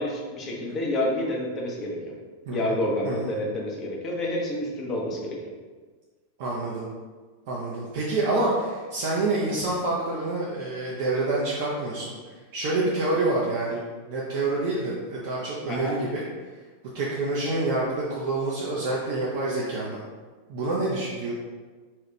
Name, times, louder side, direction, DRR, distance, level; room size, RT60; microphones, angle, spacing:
voice 1, 0.0-2.1 2.5-5.4 15.7-15.9, left 1 dB, 30° left, -2 dB, 0.8 m, -29 dB
voice 2, 2.5-2.8 3.0-3.3 6.4-6.9 7.5-12.1 12.5-13.8 14.1-16.2 16.9-20.0 20.5-21.3, right 2 dB, 50° right, -5 dB, 0.6 m, -27 dB
4.3 x 2.4 x 3.1 m, 1.4 s
figure-of-eight pair, 90°, 0 cm